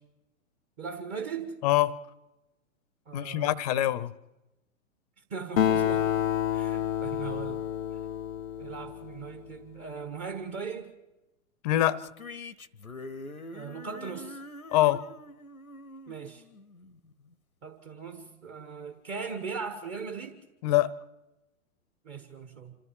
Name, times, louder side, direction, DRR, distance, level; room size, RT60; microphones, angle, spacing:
voice 1, 0.8-1.5 3.1-3.8 5.3-6.3 6.5-7.6 8.6-10.9 13.5-14.4 16.1-16.4 17.6-20.4 22.0-22.7, right 5 dB, 30° right, 1.5 m, -39 dB
voice 2, 1.6-2.0 3.1-4.1 11.6-12.0 14.7-15.0 20.6-20.9, left 14 dB, 30° left, 0.7 m, -24 dB
Acoustic guitar, 5.6-9.4, left 10 dB, 70° left, 0.6 m, -29 dB
sound 1, 12.0-17.3, left 2 dB, 90° left, 1.0 m, -45 dB
27.0 x 14.0 x 7.4 m
figure-of-eight pair, 110°, 42 cm